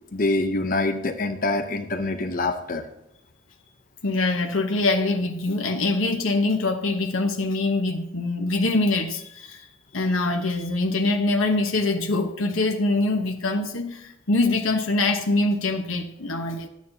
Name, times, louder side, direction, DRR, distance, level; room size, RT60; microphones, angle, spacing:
voice 1, 0.1-2.9, left 2 dB, 45° left, 0.7 m, -25 dB
voice 2, 4.0-9.7 9.9-16.7, left 2 dB, 85° left, 1.0 m, -24 dB
11.5 x 9.4 x 2.7 m
head